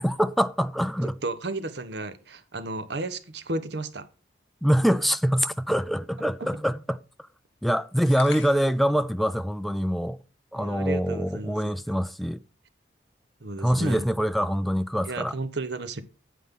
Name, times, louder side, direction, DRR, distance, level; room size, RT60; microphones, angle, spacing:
voice 1, 0.0-1.2 4.6-7.0 7.6-10.2 10.5-12.4 13.6-15.4, equal, ahead, 0.3 m, -24 dB
voice 2, 1.2-4.0 10.6-11.7 13.4-14.0 15.0-16.0, right 2 dB, 65° right, 1.0 m, -33 dB
sound 1, 8.1-8.9, left 6 dB, 70° left, 2.1 m, -42 dB
9.4 x 8.6 x 3.7 m
head